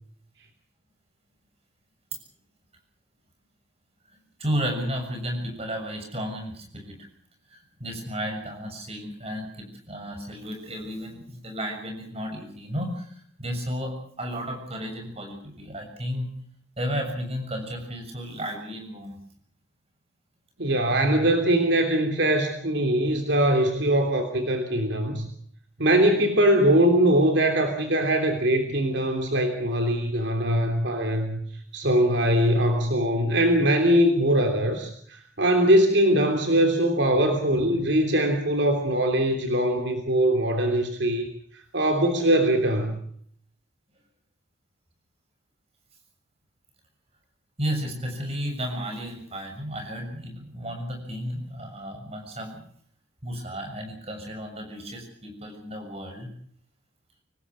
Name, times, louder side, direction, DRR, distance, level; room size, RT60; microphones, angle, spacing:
voice 1, 4.4-7.0 7.5-16.3 16.8-19.2 47.6-52.6 53.2-56.3, equal, 30° right, 4 dB, 6.9 m, -33 dB
voice 2, 20.6-25.3 25.8-31.4 31.7-41.2 41.7-43.0, right 1 dB, 65° right, 4 dB, 3.1 m, -22 dB
25.5 x 19.0 x 6.2 m, 0.63 s
head